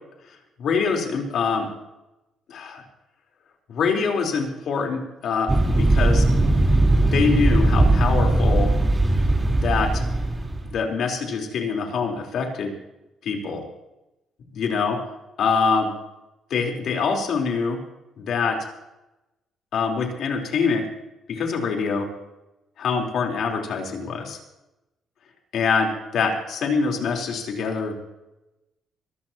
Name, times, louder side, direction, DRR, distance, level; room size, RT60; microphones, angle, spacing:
voice 1, 0.6-1.7 2.5-2.8 3.7-5.5 5.8-6.2 7.0-8.7 9.6-10.1 10.6-12.7 13.3-13.6 14.5-15.0 15.4-15.9 16.5-17.8 18.2-18.6 19.7-20.9 21.3-22.1 22.8-24.4 25.5-27.9, left 5 dB, 70° left, 1 dB, 4.0 m, -24 dB
sound 1, 5.5-10.7, right 2 dB, 20° right, 4.0 m, -19 dB
23.0 x 15.0 x 3.0 m, 0.95 s
cardioid pair, 90°, 0 cm